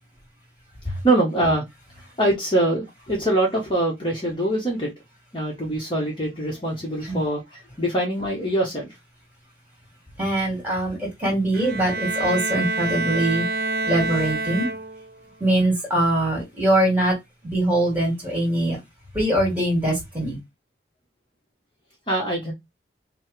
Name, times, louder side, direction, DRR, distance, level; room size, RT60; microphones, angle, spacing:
voice 1, 0.8-1.6 2.2-4.9 5.3-9.0 22.1-22.5, right 1 dB, 25° left, 1.1 m, -23 dB
voice 2, 10.2-13.5 13.8-14.7 15.4-17.1 17.4-18.8 19.1-20.4, right 1 dB, 10° right, 2.3 m, -22 dB
Bowed string instrument, 11.5-15.2, right 3 dB, 55° right, 0.6 m, -27 dB
5.3 x 2.2 x 3.2 m
head